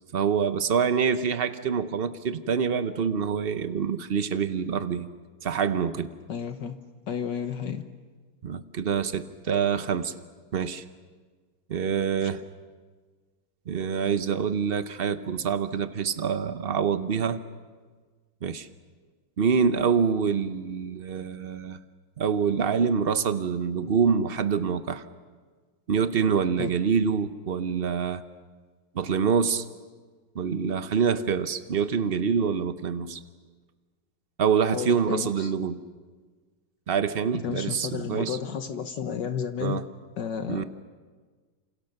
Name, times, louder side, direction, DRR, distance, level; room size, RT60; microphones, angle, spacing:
voice 1, 0.1-5.1 5.4-6.1 8.4-10.1 10.5-10.8 11.7-12.4 13.7-17.4 18.4-18.7 19.4-21.8 22.2-25.0 25.9-28.2 28.9-29.6 30.3-33.2 34.4-35.8 36.9-38.4 39.6-39.8 40.5-40.6, right 6 dB, 70° right, 11 dB, 0.5 m, -26 dB
voice 2, 6.3-6.8 7.1-7.8 12.2-12.3 26.6-26.7 34.7-35.5 37.4-39.8 40.2-40.6, left 7 dB, 60° left, 8 dB, 1.6 m, -32 dB
29.0 x 27.5 x 6.7 m, 1.5 s
omnidirectional pair, 2.3 m